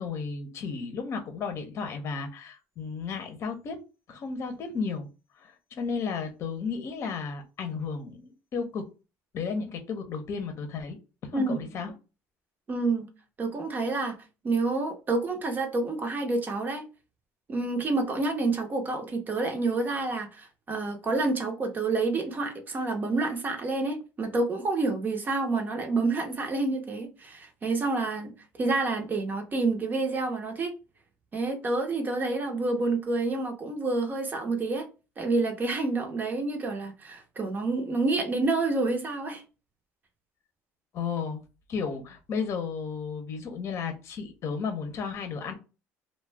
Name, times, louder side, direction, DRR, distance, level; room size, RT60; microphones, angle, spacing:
voice 1, 0.0-3.8 4.1-5.1 5.4-8.8 9.3-11.0 11.3-11.9 40.9-41.4 41.7-45.5, left 5 dB, 50° left, 0.7 m, -33 dB
voice 2, 11.3-11.7 12.7-13.1 13.4-14.1 14.4-16.8 17.5-28.3 28.6-30.7 31.3-34.9 35.2-39.4, right 3 dB, 30° right, 0.7 m, -28 dB
2.3 x 2.2 x 3.2 m
supercardioid pair, 100°, 6 cm